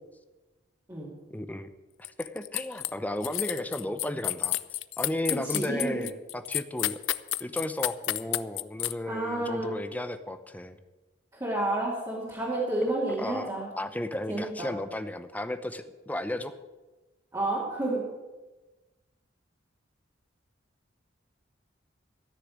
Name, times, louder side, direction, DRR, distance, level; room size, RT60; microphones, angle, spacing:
voice 1, 1.3-1.7 2.2-4.6 5.0-7.0 7.4-10.8 13.2-13.5 13.8-16.5, left 1 dB, 10° left, 10 dB, 0.7 m, -34 dB
sound 1, 2.0-2.9 3.2-8.9, left 16 dB, 80° left, 0.5 m, -30 dB
voice 2, 5.4-5.9 9.1-9.8 11.3-13.7 14.3-14.7 17.3-18.0, right 1 dB, 20° right, -7 dB, 2.6 m, -30 dB
13.5 x 6.6 x 9.4 m, 1.1 s
head